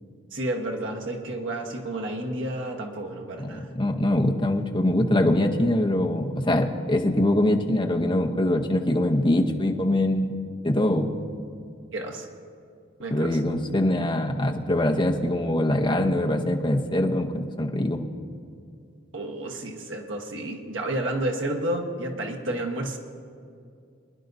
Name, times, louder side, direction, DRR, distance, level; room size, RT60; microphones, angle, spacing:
voice 1, 0.3-3.7 11.9-12.3 13.0-13.4 19.1-23.0, right 1 dB, 70° right, 1 dB, 1.3 m, -31 dB
voice 2, 3.4-10.3 10.6-11.1 13.1-18.0, left 1 dB, 25° left, 2 dB, 0.8 m, -23 dB
23.5 x 11.0 x 2.7 m, 2.4 s
head